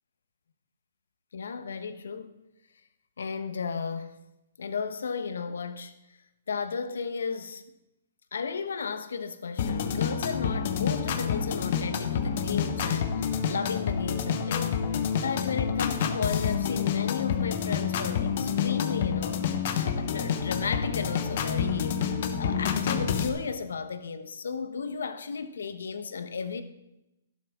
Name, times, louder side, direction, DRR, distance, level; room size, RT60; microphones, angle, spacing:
voice 1, 1.3-2.3 3.2-4.2 4.6-5.9 6.5-7.6 8.3-26.6, left 5 dB, 85° left, 1.0 m, -34 dB
sound 1, 9.6-23.3, left 7 dB, 50° left, 1.1 m, -28 dB
12.0 x 11.5 x 3.6 m
hypercardioid pair, 155°, 0 cm